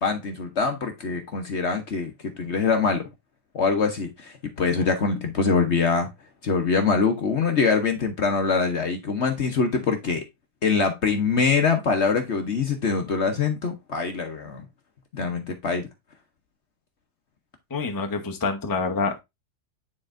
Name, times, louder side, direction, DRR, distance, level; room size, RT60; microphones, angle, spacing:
voice 1, 0.0-3.0 3.5-6.1 6.4-10.2 10.6-14.7 15.1-15.9, left 5 dB, 50° left, 1.1 m, -24 dB
voice 2, 17.7-19.2, left 4 dB, 15° left, 0.8 m, -27 dB
9.5 x 4.3 x 2.5 m
omnidirectional pair, 1.7 m